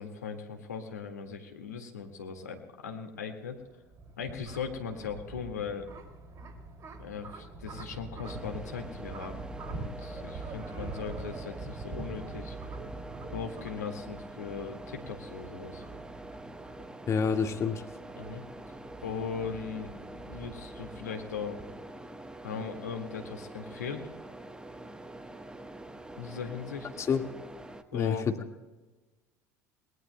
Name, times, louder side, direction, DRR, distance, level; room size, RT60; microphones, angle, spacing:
voice 1, 0.0-3.6 4.2-5.9 7.0-12.6 13.3-15.8 18.1-18.4 19.0-21.6 22.4-24.1 26.2-26.9 27.9-28.3, left 6 dB, 80° left, 4 dB, 1.8 m, -39 dB
sound 1, 3.6-21.7, right 3 dB, 40° right, 2.5 m, -45 dB
sound 2, 8.2-27.8, right 1 dB, 10° right, 1.1 m, -45 dB
voice 2, 17.1-17.9 27.0-27.2 27.9-28.3, left 6 dB, 35° left, 5 dB, 1.8 m, -28 dB
29.0 x 20.0 x 2.2 m, 1.2 s
hypercardioid pair, 70°, 9 cm